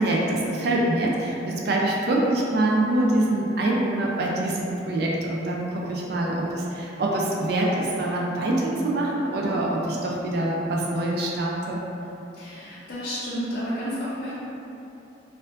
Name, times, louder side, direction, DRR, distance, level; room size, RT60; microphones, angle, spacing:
voice 1, 0.0-11.8, right 1 dB, 60° right, -2 dB, 0.4 m, -25 dB
voice 2, 9.3-9.8 12.3-14.3, equal, 55° left, -10 dB, 0.6 m, -32 dB
4.3 x 2.5 x 2.5 m, 2.9 s
head